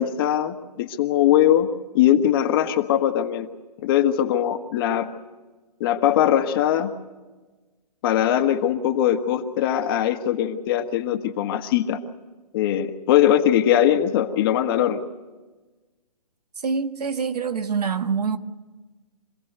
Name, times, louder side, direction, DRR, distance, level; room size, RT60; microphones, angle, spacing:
voice 1, 0.0-1.7 1.9-3.5 3.8-5.1 5.8-6.9 8.0-12.0 12.5-15.0, left 11 dB, 35° left, 1.4 m, -21 dB
voice 2, 16.6-18.4, right 5 dB, 70° right, 1.6 m, -25 dB
26.0 x 16.0 x 8.0 m
hypercardioid pair, 140°, 21 cm